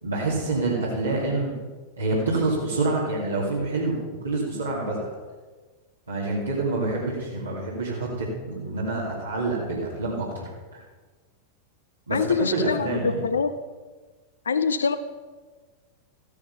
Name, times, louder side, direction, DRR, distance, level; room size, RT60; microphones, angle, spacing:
voice 1, 0.0-1.5 2.0-5.1 6.1-10.4 12.1-13.3, right 2 dB, 75° right, -5 dB, 2.5 m, -27 dB
voice 2, 12.1-13.5 14.5-15.0, left 5 dB, 70° left, 11 dB, 0.7 m, -24 dB
14.0 x 9.7 x 5.4 m, 1.4 s
figure-of-eight pair, 90°, 0 cm